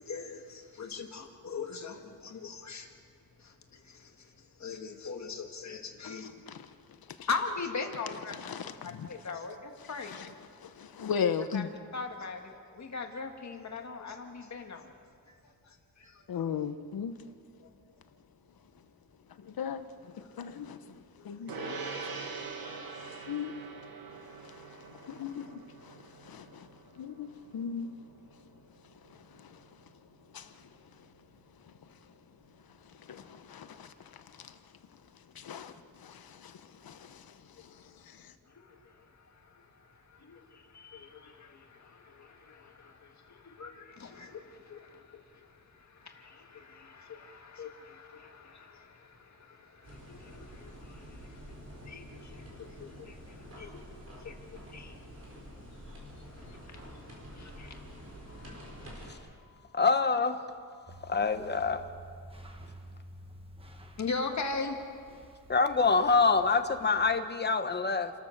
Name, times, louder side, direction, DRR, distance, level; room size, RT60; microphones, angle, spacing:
voice 1, 0.0-2.9 3.4-6.3 7.3-8.3 8.8-10.2 11.5-11.6 11.9-14.9 15.6-16.2 17.6-17.7 21.2-21.4 22.3-22.4 38.5-59.3 64.0-64.8, left 4 dB, 45° left, 1.9 m, -41 dB
voice 2, 6.0-6.7 7.1-7.3 8.3-9.1 9.8-10.3 10.6-11.7 16.3-17.2 19.4-21.8 22.2-23.6 24.1-26.7 26.9-27.9 29.0-29.6 30.3-30.7 31.0-31.1 31.6-31.7 32.8-34.6 35.3-38.3, left 7 dB, 70° left, 1.1 m, -39 dB
Gong, 21.5-31.2, right 4 dB, 65° right, 2.0 m, -45 dB
sound 1, 49.8-59.1, equal, 40° right, 5.0 m, -48 dB
voice 3, 59.7-60.4 61.1-61.9 65.5-68.1, left 4 dB, 25° left, 1.1 m, -26 dB
sound 2, 60.9-67.2, right 1 dB, 15° right, 1.4 m, -51 dB
29.0 x 13.5 x 6.6 m
wide cardioid pair, 175°, 38 cm